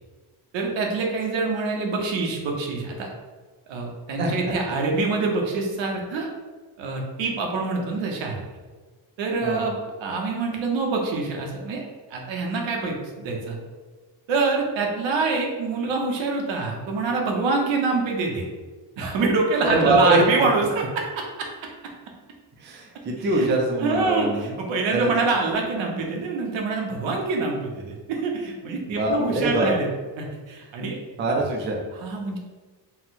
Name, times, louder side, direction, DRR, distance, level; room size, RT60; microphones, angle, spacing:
voice 1, 0.5-3.1 3.7-6.3 6.8-8.4 9.2-9.7 10.0-13.6 14.3-18.5 19.0-21.5 23.2-23.5 23.8-29.9 30.2-31.0 31.9-32.4, right 3 dB, 85° right, 0 dB, 1.0 m, -25 dB
voice 2, 19.6-20.2 22.6-24.5 24.9-25.1 28.9-29.7 31.2-31.8, right 2 dB, 25° right, 0 dB, 0.4 m, -23 dB
4.2 x 2.1 x 4.1 m, 1.4 s
cardioid pair, 180°, 44 cm